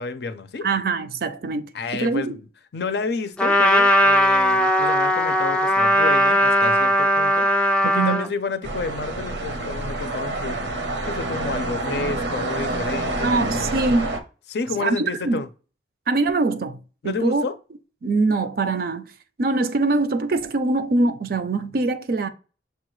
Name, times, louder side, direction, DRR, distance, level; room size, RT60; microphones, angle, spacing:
voice 1, 0.0-0.7 1.7-2.4 2.7-10.6 11.0-13.6 14.5-15.5 17.0-17.6, left 4 dB, 65° left, 0.5 m, -30 dB
voice 2, 0.6-2.4 7.9-8.2 13.2-14.1 14.8-15.4 16.1-16.8 17.0-17.5 18.0-19.1 19.4-22.3, right 3 dB, 55° right, 0.4 m, -23 dB
Trumpet, 3.4-8.3, equal, 5° left, 0.4 m, -18 dB
sound 1, 8.6-14.2, right 2 dB, 85° right, 0.8 m, -27 dB
6.5 x 2.3 x 3.1 m
head